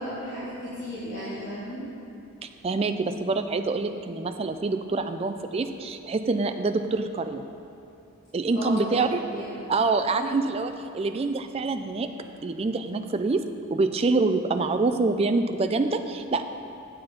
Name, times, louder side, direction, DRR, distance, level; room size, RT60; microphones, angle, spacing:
voice 1, 0.0-1.8 8.5-9.5, equal, 35° left, -11 dB, 1.6 m, -34 dB
voice 2, 2.4-7.4 8.3-9.2 9.7-12.1 12.4-13.4 13.7-16.4, right 3 dB, 25° right, 8 dB, 0.3 m, -26 dB
7.8 x 7.1 x 5.2 m, 2.7 s
head